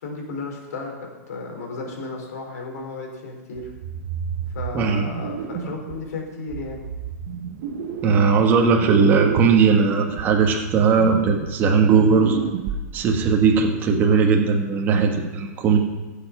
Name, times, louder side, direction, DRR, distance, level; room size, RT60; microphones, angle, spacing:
voice 1, 0.0-3.7 4.5-6.9, left 3 dB, 65° left, 1 dB, 4.2 m, -34 dB
sound 1, 3.6-6.0 6.5-8.5 8.8-13.7, right 7 dB, 40° right, 1.1 m, -30 dB
voice 2, 4.7-5.1 8.0-12.4 12.9-15.8, right 5 dB, 20° right, 1 dB, 1.4 m, -18 dB
16.0 x 7.1 x 6.0 m, 1.3 s
hypercardioid pair, 165°, 9 cm